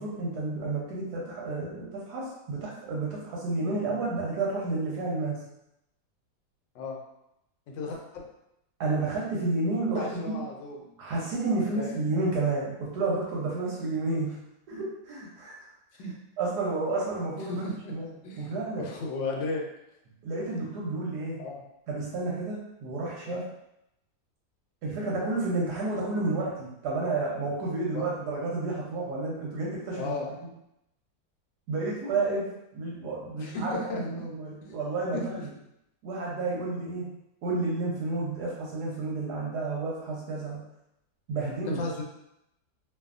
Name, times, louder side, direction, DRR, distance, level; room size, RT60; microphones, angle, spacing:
voice 1, 0.0-5.4 8.8-10.4 11.0-14.4 14.7-15.7 16.4-17.6 17.9-18.1 18.4-18.9 20.2-21.4 21.9-23.4 24.8-30.1 31.7-35.3 36.0-37.1 37.4-40.6 41.3-41.8, right 3 dB, 70° right, -4 dB, 1.1 m, -31 dB
voice 2, 7.7-8.2 10.0-10.9 11.6-12.0 16.0-16.1 17.4-17.9 18.2-18.5 18.8-19.6 21.4-21.6 23.2-23.4 27.9-28.1 30.0-30.3 33.4-34.2 34.6-34.8 35.1-35.4 41.7-42.0, left 3 dB, 80° left, 0 dB, 1.3 m, -35 dB
2.6 x 2.6 x 2.4 m, 0.84 s
omnidirectional pair, 2.0 m